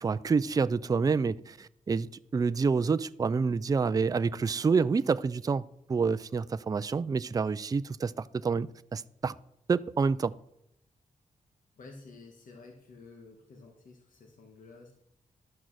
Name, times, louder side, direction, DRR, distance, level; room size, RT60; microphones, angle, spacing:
voice 1, 0.0-9.3 9.7-10.3, right 5 dB, 25° right, 0.4 m, -28 dB
voice 2, 11.8-14.9, left 3 dB, 80° left, 1.6 m, -51 dB
12.0 x 6.3 x 6.3 m
cardioid pair, 90°, 14 cm